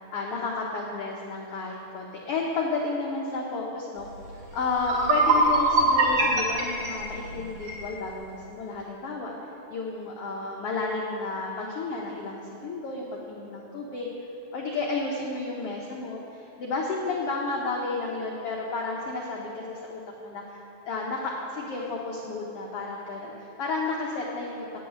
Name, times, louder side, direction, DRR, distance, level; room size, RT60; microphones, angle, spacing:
voice 1, 0.1-9.3 9.7-14.1 14.5-24.8, left 3 dB, 90° left, -2 dB, 1.3 m, -32 dB
sound 1, 4.3-4.4 4.7-7.8, right 2 dB, 45° right, 2.6 m, -23 dB
8.7 x 7.9 x 8.6 m, 2.9 s
omnidirectional pair, 4.0 m